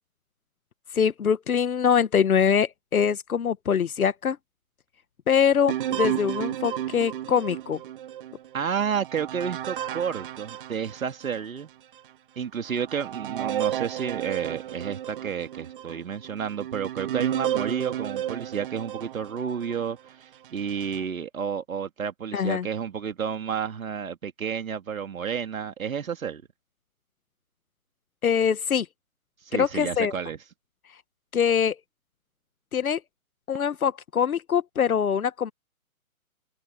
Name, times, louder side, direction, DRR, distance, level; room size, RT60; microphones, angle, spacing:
voice 1, 0.9-4.4 5.3-7.8 22.3-22.7 28.2-28.9 29.5-30.1 31.3-31.8 32.7-33.0 33.5-35.5, left 7 dB, 80° left, 1.2 m, -23 dB
sound 1, 5.7-11.4 12.0-12.1 12.6-19.8 20.4-21.0, right 11 dB, 40° right, 1.5 m, -33 dB
voice 2, 8.5-11.7 12.4-26.4 29.4-30.4, right 7 dB, 70° right, 2.5 m, -31 dB
hypercardioid pair, 155°, 42 cm